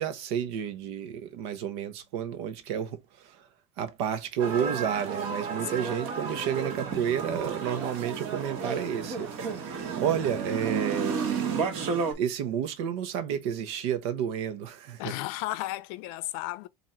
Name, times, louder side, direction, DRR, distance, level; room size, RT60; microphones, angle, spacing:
voice 1, 0.0-3.0 3.8-9.3 10.0-11.4 12.1-15.1, right 9 dB, 70° right, 1.0 m, -30 dB
sound 1, 4.4-12.1, right 5 dB, 45° right, 1.4 m, -32 dB
voice 2, 5.6-6.0 15.0-16.7, left 16 dB, 65° left, 0.5 m, -34 dB
4.0 x 2.7 x 4.4 m
cardioid pair, 170°, 14 cm